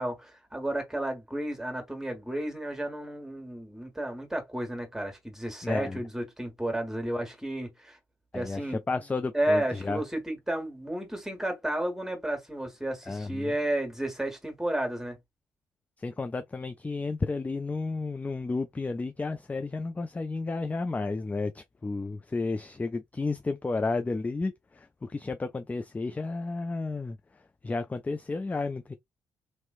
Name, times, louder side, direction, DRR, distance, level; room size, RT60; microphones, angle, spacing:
voice 1, 0.0-8.0 8.3-8.8 9.3-15.2, right 1 dB, 5° right, 1.4 m, -32 dB
voice 2, 5.6-6.0 8.3-10.0 13.1-13.5 16.0-27.2 27.6-29.0, left 3 dB, 15° left, 0.3 m, -32 dB
3.1 x 3.0 x 2.5 m
figure-of-eight pair, 40°, 10 cm